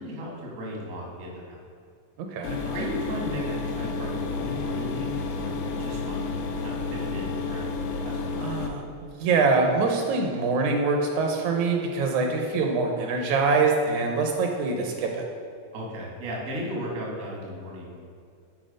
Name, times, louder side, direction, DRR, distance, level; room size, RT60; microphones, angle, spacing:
voice 1, 0.0-1.6 2.6-6.2 6.6-8.4 15.7-18.0, equal, 55° right, -3 dB, 0.9 m, -35 dB
voice 2, 2.2-2.6 8.4-15.3, right 4 dB, 80° right, 2 dB, 1.8 m, -24 dB
sound 1, 2.4-8.7, left 4 dB, 85° left, 1.4 m, -31 dB
6.3 x 4.2 x 5.0 m, 2.3 s
omnidirectional pair, 3.5 m